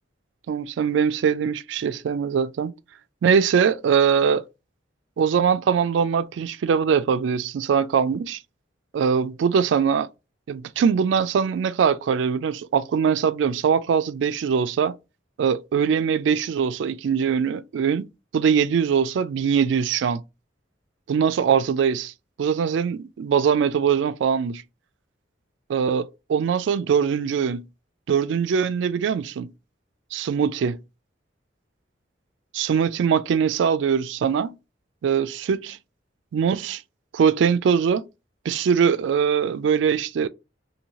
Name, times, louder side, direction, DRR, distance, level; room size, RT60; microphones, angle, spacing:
voice 1, 0.5-2.7 3.2-4.4 5.2-8.4 8.9-10.1 10.5-14.9 15.4-18.1 18.3-20.2 21.1-22.1 22.4-24.6 25.7-27.6 28.1-29.5 30.1-30.8 32.5-34.5 35.0-35.8 36.3-36.8 37.1-38.0 38.5-40.3, right 7 dB, 70° right, 0.3 m, -22 dB
2.7 x 2.6 x 2.9 m
head